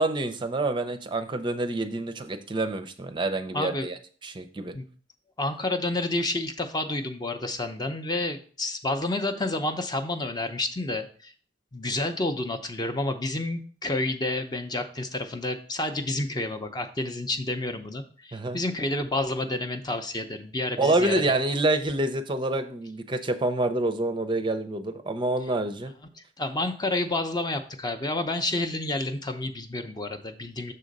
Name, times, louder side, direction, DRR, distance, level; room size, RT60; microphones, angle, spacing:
voice 1, 0.0-4.7 18.3-18.6 20.8-25.9, right 2 dB, 25° right, 8 dB, 0.5 m, -27 dB
voice 2, 3.5-3.9 4.7-4.9 5.4-11.3 11.7-21.2 26.4-30.7, left 2 dB, 25° left, 7 dB, 0.6 m, -29 dB
6.6 x 3.7 x 5.2 m, 0.42 s
head